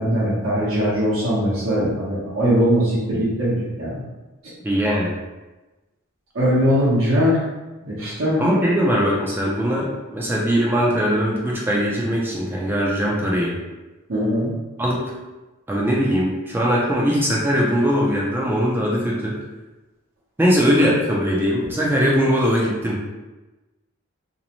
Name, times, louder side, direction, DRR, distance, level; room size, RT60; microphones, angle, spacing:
voice 1, 0.0-4.0 6.3-7.4 7.8-8.4 14.1-14.5, equal, 75° right, -9 dB, 0.8 m, -20 dB
voice 2, 4.6-5.1 8.4-13.6 14.8-15.0 15.7-19.4 20.4-23.0, equal, 10° right, -4 dB, 0.3 m, -20 dB
2.6 x 2.0 x 2.9 m, 1.1 s
head